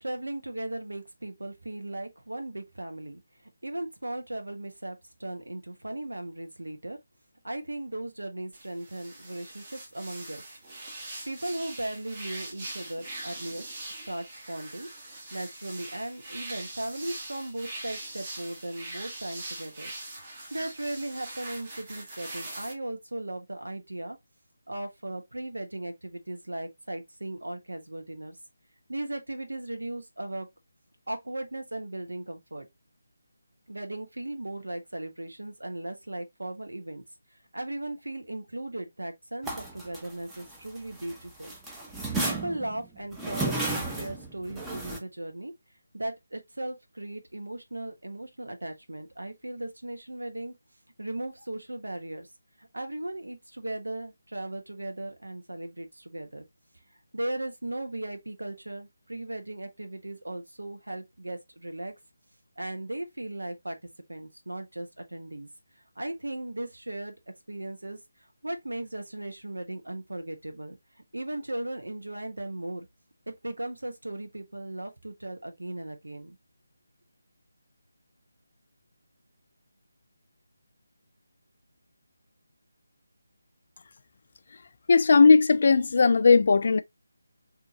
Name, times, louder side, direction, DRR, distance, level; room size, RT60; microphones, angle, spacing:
voice 1, 0.0-3.2 3.6-7.0 7.4-10.4 11.3-13.6 14.0-14.9 15.3-19.9 20.3-24.2 24.7-28.4 28.9-30.5 31.1-32.7 33.7-37.0 37.5-41.5 42.2-45.5 45.9-50.6 51.0-52.3 52.6-56.5 57.1-61.9 62.6-63.8 64.1-65.5 66.0-67.1 67.5-68.0 68.4-70.8 71.1-72.9 73.3-76.4, right 1 dB, 80° right, 1.0 m, -37 dB
sound 1, 8.5-22.7, right 2 dB, 30° right, 1.1 m, -42 dB
sound 2, 39.4-41.1 41.4-45.0, right 2 dB, 5° right, 0.5 m, -33 dB
voice 2, 84.9-86.8, left 4 dB, 50° left, 0.3 m, -18 dB
3.8 x 2.8 x 2.7 m
figure-of-eight pair, 155°, 0 cm